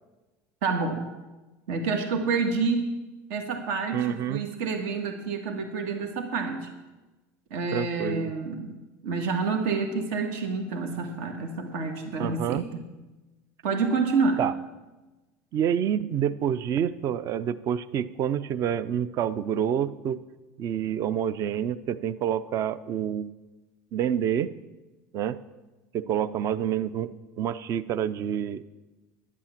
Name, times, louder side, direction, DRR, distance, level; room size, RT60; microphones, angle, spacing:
voice 1, 0.6-1.0 1.7-2.9 3.3-6.7 7.5-8.8 9.0-12.8 13.6-14.4, right 4 dB, 75° right, 3 dB, 1.9 m, -28 dB
voice 2, 3.9-4.4 7.7-8.3 12.2-12.6 14.4-14.5 15.5-20.2 20.6-23.3 23.9-24.5 25.1-25.4 25.9-28.7, right 9 dB, 45° right, 15 dB, 0.6 m, -28 dB
11.0 x 8.6 x 7.4 m, 1.1 s
supercardioid pair, 120°, 7 cm